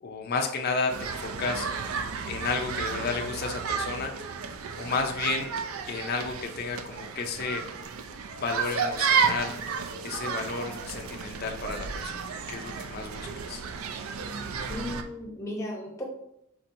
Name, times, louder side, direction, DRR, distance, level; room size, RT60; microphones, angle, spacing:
voice 1, 0.0-1.7 2.3-4.1 4.8-5.5 5.9-7.6 8.4-9.6 10.0-13.6, left 4 dB, 45° left, 4 dB, 0.4 m, -32 dB
sound 1, 0.9-15.0, right 6 dB, 70° right, 0.4 m, -32 dB
voice 2, 14.7-16.1, left 1 dB, 15° left, -2 dB, 0.8 m, -35 dB
4.3 x 4.3 x 2.6 m, 0.79 s
head